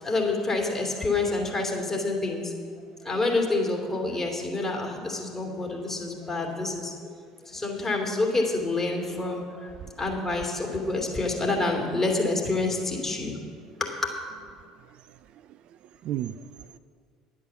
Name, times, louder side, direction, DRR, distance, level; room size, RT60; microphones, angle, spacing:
voice 1, 0.0-2.5 3.0-7.1 7.4-9.7 10.0-13.4 13.8-14.1, left 2 dB, 20° left, 0 dB, 2.9 m, -28 dB
voice 2, 14.9-16.8, right 12 dB, 45° right, 12 dB, 0.4 m, -37 dB
10.5 x 8.5 x 7.3 m, 2.1 s
figure-of-eight pair, 60°, 2 cm